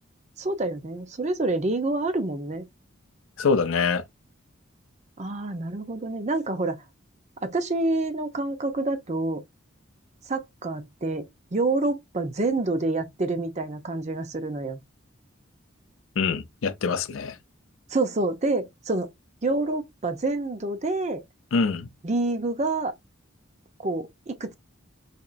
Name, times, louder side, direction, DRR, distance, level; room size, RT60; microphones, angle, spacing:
voice 1, 0.4-2.6 5.2-6.8 7.4-9.4 10.3-14.8 17.9-19.1 19.4-21.2 22.0-22.9 23.8-24.5, right 2 dB, 35° right, 0.6 m, -27 dB
voice 2, 3.4-4.0 16.2-17.4 21.5-21.9, left 5 dB, 85° left, 0.5 m, -24 dB
4.2 x 2.9 x 2.5 m
head